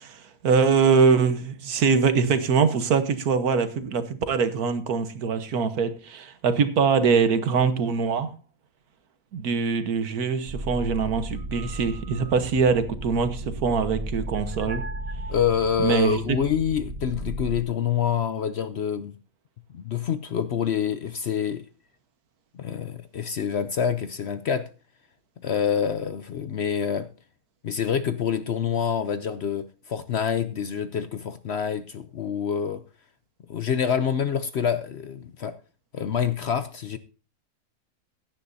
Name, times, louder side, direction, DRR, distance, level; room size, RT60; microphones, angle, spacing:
voice 1, 0.0-8.3 9.3-14.8 15.8-16.2, right 5 dB, 75° right, 1.6 m, -23 dB
sound 1, 10.5-17.6, right 1 dB, 40° right, 0.6 m, -35 dB
voice 2, 15.3-19.1 19.7-21.7 22.5-24.7 25.4-27.1 27.6-32.8 33.5-35.6 35.9-37.0, left 7 dB, 60° left, 0.8 m, -26 dB
16.0 x 10.0 x 2.7 m
omnidirectional pair, 1.6 m